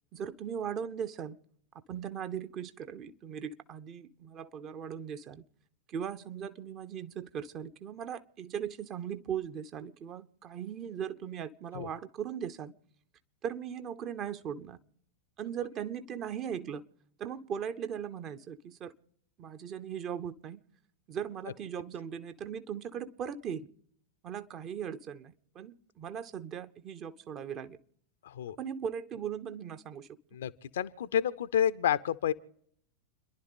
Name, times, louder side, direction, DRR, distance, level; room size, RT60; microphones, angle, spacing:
voice 1, 0.1-1.4 1.9-5.4 5.9-12.7 13.4-14.8 15.4-16.8 17.2-18.9 19.4-20.6 21.1-23.7 24.2-27.8 28.6-30.1, right 8 dB, 35° right, 0.9 m, -38 dB
voice 2, 28.2-28.6 30.3-32.3, left 9 dB, 60° left, 0.6 m, -30 dB
30.0 x 11.0 x 3.9 m
figure-of-eight pair, 90°, 0 cm